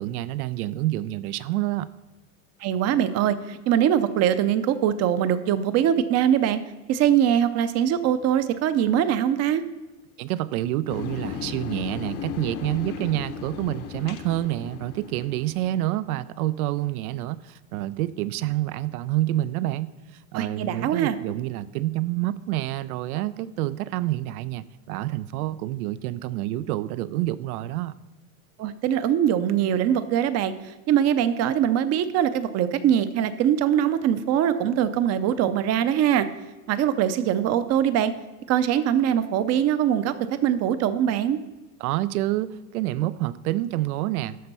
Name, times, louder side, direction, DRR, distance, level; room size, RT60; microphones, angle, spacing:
voice 1, 0.0-1.9 10.2-27.9 41.8-44.4, right 15 dB, 85° right, 17 dB, 0.6 m, -28 dB
voice 2, 2.6-6.6 6.9-9.6 20.3-21.2 28.6-30.5 30.9-36.3 36.7-38.1 38.5-40.1 40.4-41.4, right 10 dB, 35° right, 13 dB, 0.6 m, -22 dB
sound 1, 10.9-15.9, left 7 dB, 75° left, 1.2 m, -35 dB
13.0 x 4.4 x 5.4 m, 1.2 s
supercardioid pair, 135°, 43 cm